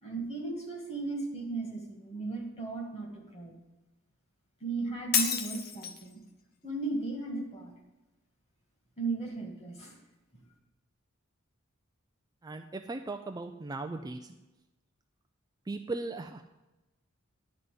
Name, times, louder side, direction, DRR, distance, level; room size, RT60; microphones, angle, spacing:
voice 1, 0.0-3.5 4.6-6.2 6.6-7.7 9.0-9.9, right 3 dB, 30° left, 1 dB, 2.1 m, -36 dB
Shatter, 5.1-6.1, left 7 dB, 45° left, 0.7 m, -30 dB
voice 2, 12.4-14.3 15.7-16.4, right 3 dB, 20° right, 5 dB, 0.4 m, -38 dB
11.0 x 4.1 x 7.8 m, 1.0 s
head